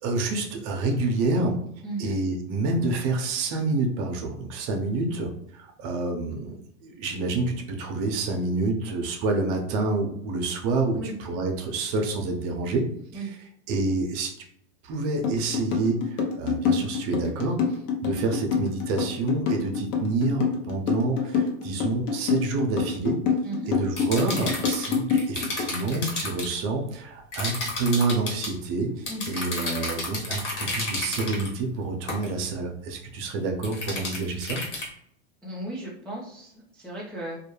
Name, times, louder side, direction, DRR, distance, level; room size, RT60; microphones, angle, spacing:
voice 1, 0.0-1.6 2.0-11.0 11.2-12.9 13.1-13.3 13.7-14.4 14.8-17.6 18.0-23.2 23.7-34.6, right 3 dB, 50° right, 2 dB, 0.6 m, -28 dB
voice 2, 1.8-2.2 11.0-11.1 13.1-13.3 23.4-23.7 29.1-29.4 35.4-37.4, right 2 dB, ahead, -6 dB, 0.4 m, -35 dB
sound 1, 15.2-25.8, left 6 dB, 45° left, 0.7 m, -26 dB
sound 2, 24.0-26.5 27.3-28.5 29.1-31.5 32.1-32.3 33.6-34.9, left 2 dB, 80° left, 1.3 m, -31 dB
2.3 x 2.1 x 2.9 m, 0.70 s
supercardioid pair, 125°, 35 cm